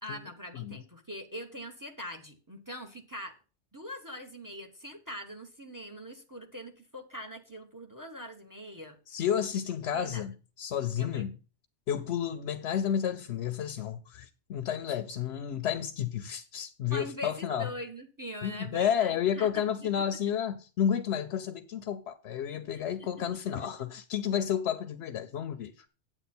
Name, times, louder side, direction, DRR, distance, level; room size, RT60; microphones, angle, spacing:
voice 1, 0.0-3.4 3.7-9.2 9.5-9.6 9.9-10.2 11.0-11.3 14.9-15.0 16.9-19.5 19.8-19.9 22.7-23.1, equal, 20° right, 0.9 m, -43 dB
voice 2, 9.1-11.3 11.9-17.7 18.4-25.9, left 9 dB, 75° left, 0.9 m, -31 dB
8.7 x 8.1 x 4.3 m
omnidirectional pair, 1.2 m